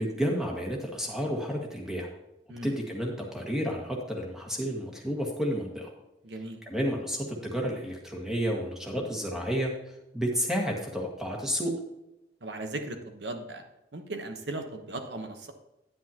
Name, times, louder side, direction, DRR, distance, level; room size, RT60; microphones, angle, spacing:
voice 1, 0.0-2.1 2.6-5.9 6.7-9.7 10.1-11.7, equal, 5° right, -1 dB, 1.7 m, -31 dB
voice 2, 6.2-6.6 12.4-13.6 13.9-15.5, right 2 dB, 80° right, 6 dB, 1.1 m, -37 dB
10.0 x 9.8 x 2.9 m, 0.94 s
head